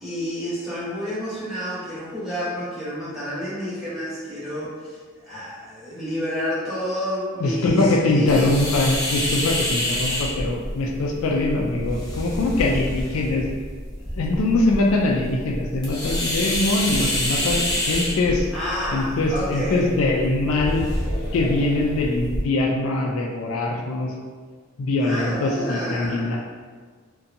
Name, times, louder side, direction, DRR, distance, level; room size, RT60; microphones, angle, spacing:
voice 1, 0.0-8.5 18.5-19.9 25.0-26.4, equal, ahead, -12 dB, 0.8 m, -30 dB
voice 2, 7.4-13.5 14.1-18.5 18.9-20.9 21.3-24.1 24.8-26.4, left 2 dB, 75° left, 0 dB, 0.3 m, -22 dB
sound 1, 8.3-22.4, left 1 dB, 20° left, 0.5 m, -28 dB
2.6 x 2.2 x 2.6 m, 1.5 s
head